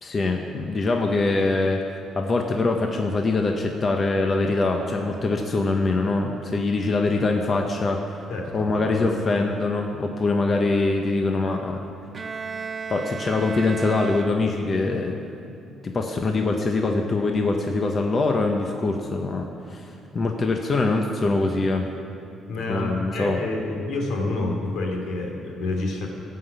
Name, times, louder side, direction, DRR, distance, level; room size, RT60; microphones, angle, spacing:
voice 1, 0.0-1.8 2.1-8.2 8.5-11.9 12.9-15.3 15.8-21.9 22.7-23.4, left 3 dB, 35° left, 2 dB, 1.0 m, -23 dB
voice 2, 8.3-9.1 22.5-26.1, left 2 dB, 80° left, 1 dB, 2.8 m, -28 dB
Bowed string instrument, 12.1-14.9, right 5 dB, 30° right, 0.4 m, -35 dB
16.5 x 5.9 x 8.2 m, 2.6 s
cardioid pair, 120°, 0 cm